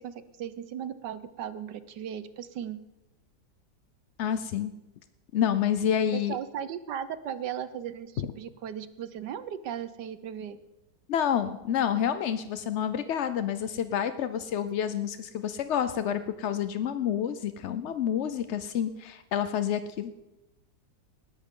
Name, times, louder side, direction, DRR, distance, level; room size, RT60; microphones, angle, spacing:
voice 1, 0.0-2.8 6.1-10.6, right 9 dB, 75° right, 13 dB, 1.5 m, -37 dB
voice 2, 4.2-4.7 5.3-6.4 11.1-20.1, left 9 dB, 65° left, 11 dB, 0.7 m, -28 dB
19.0 x 13.5 x 3.8 m, 0.99 s
omnidirectional pair, 1.9 m